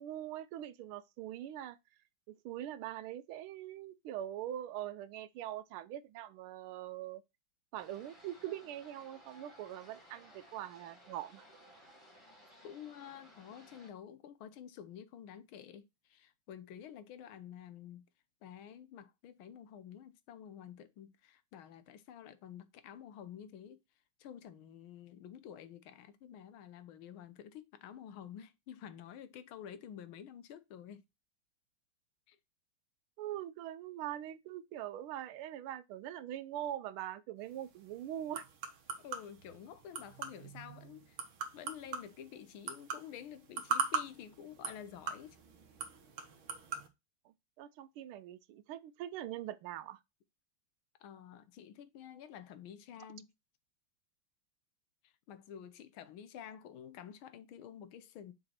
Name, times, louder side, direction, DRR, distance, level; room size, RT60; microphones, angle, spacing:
voice 1, 0.0-1.8 2.3-7.2 7.7-11.4 33.2-38.4 47.2-50.0, right 12 dB, 90° right, 1.5 m, -43 dB
sound 1, 7.8-13.9, equal, 15° left, 2.3 m, -59 dB
voice 2, 12.6-18.0 18.4-23.8 24.2-31.0 32.3-32.4 39.0-41.2 41.5-45.4 51.0-53.3 55.0-58.3, left 9 dB, 80° left, 1.6 m, -50 dB
sound 2, 37.4-46.9, right 5 dB, 70° right, 2.0 m, -42 dB
6.8 x 4.2 x 4.3 m
omnidirectional pair, 2.3 m